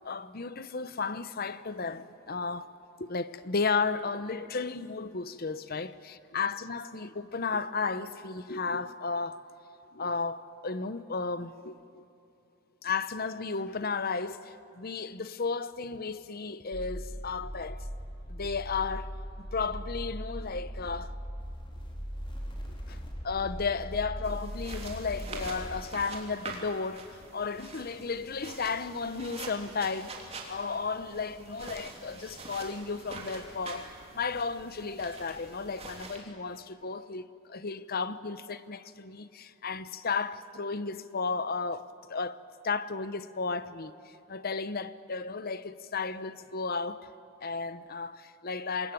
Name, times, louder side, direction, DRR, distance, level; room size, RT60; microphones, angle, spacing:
voice 1, 0.0-2.7 3.0-9.5 9.9-12.0 12.8-17.9 18.3-21.2 22.9-23.0 23.2-47.1 47.4-48.9, left 4 dB, 45° left, 0.8 m, -34 dB
sound 1, 16.7-25.8, equal, 25° left, 3.9 m, -39 dB
sound 2, 24.2-36.2, right 3 dB, 30° right, 3.3 m, -45 dB
26.0 x 21.0 x 9.3 m
head